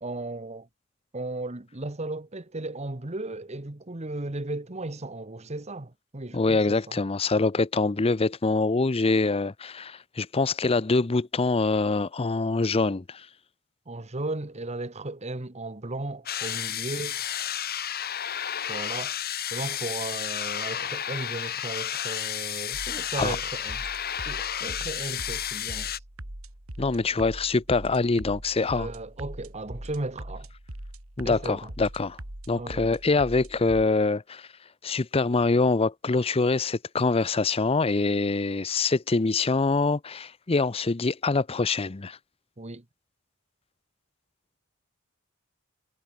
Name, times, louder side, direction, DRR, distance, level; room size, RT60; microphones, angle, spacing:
voice 1, 0.0-0.7 1.1-7.0 13.9-17.2 18.7-19.2 19.5-23.8 24.3-25.9 28.7-30.5 31.2-31.7 32.6-33.0 42.6-42.8, right 2 dB, 30° right, 1.3 m, -35 dB
voice 2, 6.3-13.3 23.2-23.4 26.8-28.9 31.2-32.2 32.5-34.5 34.8-42.2, left 3 dB, 25° left, 0.6 m, -25 dB
sound 1, 16.3-26.0, left 10 dB, 45° left, 1.7 m, -32 dB
sound 2, 22.7-33.8, right 1 dB, 75° right, 3.6 m, -41 dB
head